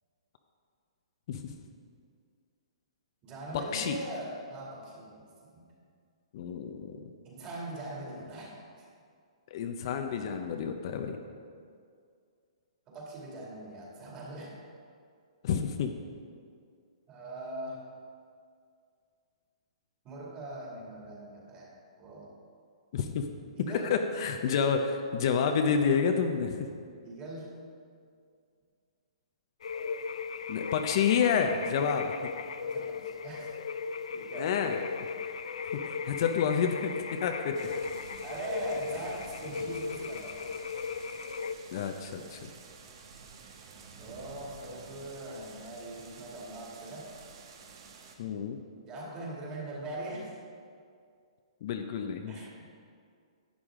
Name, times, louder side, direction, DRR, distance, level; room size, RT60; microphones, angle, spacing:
voice 1, 3.2-5.3 5.5-5.7 7.2-8.9 12.9-14.6 17.1-17.9 20.0-22.3 23.5-24.0 27.0-27.5 32.6-33.5 34.1-34.6 38.2-40.5 44.0-47.1 48.9-50.4 52.3-52.7, right 1 dB, 25° right, -3 dB, 2.4 m, -41 dB
voice 2, 6.3-6.9 9.5-11.2 15.4-15.9 22.9-23.3 23.7-26.7 30.5-32.3 34.4-34.8 35.7-37.6 41.7-42.5 48.2-48.6 51.6-52.3, left 6 dB, 50° left, 5 dB, 0.7 m, -29 dB
sound 1, 29.6-41.5, left 5 dB, 80° left, 0.4 m, -37 dB
sound 2, 37.5-48.2, right 5 dB, 50° right, 1.2 m, -50 dB
11.0 x 8.3 x 3.7 m, 2.3 s
hypercardioid pair, 150°, 3 cm